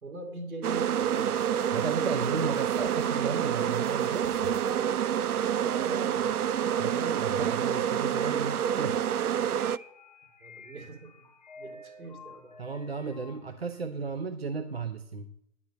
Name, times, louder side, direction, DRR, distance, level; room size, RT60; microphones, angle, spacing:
voice 1, 0.0-1.3 2.1-2.4 5.7-6.3 10.4-11.1 11.6-12.5, right 2 dB, 70° right, 3 dB, 4.3 m, -41 dB
sound 1, 0.6-9.8, right 9 dB, 85° right, 0.6 m, -28 dB
sound 2, 1.0-3.1 3.5-5.0, left 1 dB, 5° right, 2.3 m, -53 dB
sound 3, 1.4-13.8, left 2 dB, 30° left, 0.7 m, -52 dB
voice 2, 1.7-4.6 6.8-9.0 12.6-15.3, right 4 dB, 45° right, 9 dB, 0.6 m, -35 dB
10.5 x 5.3 x 8.1 m, 0.76 s
hypercardioid pair, 175°, 44 cm